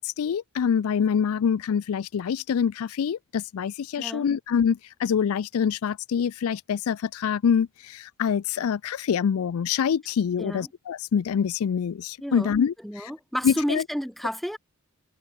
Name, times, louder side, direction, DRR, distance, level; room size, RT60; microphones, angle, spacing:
voice 1, 0.0-13.1 13.4-13.8, left 7 dB, 85° left, 0.4 m, -25 dB
voice 2, 4.0-4.3 10.4-10.7 12.2-12.6 12.8-14.6, equal, ahead, 3.7 m, -31 dB
head